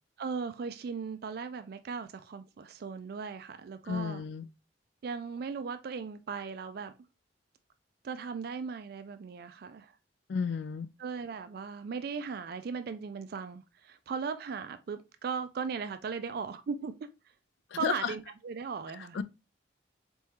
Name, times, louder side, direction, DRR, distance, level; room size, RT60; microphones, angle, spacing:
voice 1, 0.2-4.2 5.0-6.9 8.0-10.0 11.0-17.1 17.7-19.2, right 5 dB, 60° right, 0.4 m, -38 dB
voice 2, 3.9-4.5 10.3-10.9 17.7-18.1 19.1-19.2, left 6 dB, 70° left, 0.3 m, -32 dB
4.2 x 3.6 x 2.9 m
head